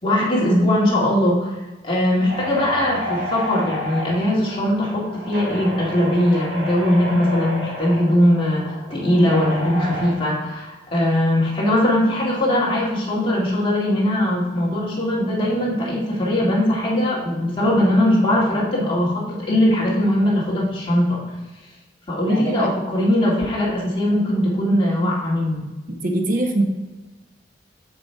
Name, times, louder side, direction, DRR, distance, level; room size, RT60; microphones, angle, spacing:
voice 1, 0.0-1.5 1.8-21.2 22.1-25.6, left 1 dB, 30° left, -5 dB, 2.0 m, -20 dB
sound 1, 2.3-10.1, equal, 70° right, 1.8 m, -31 dB
voice 2, 22.3-22.7 25.9-26.6, right 2 dB, 50° right, 3 dB, 0.8 m, -23 dB
7.2 x 5.4 x 4.5 m, 1.1 s
head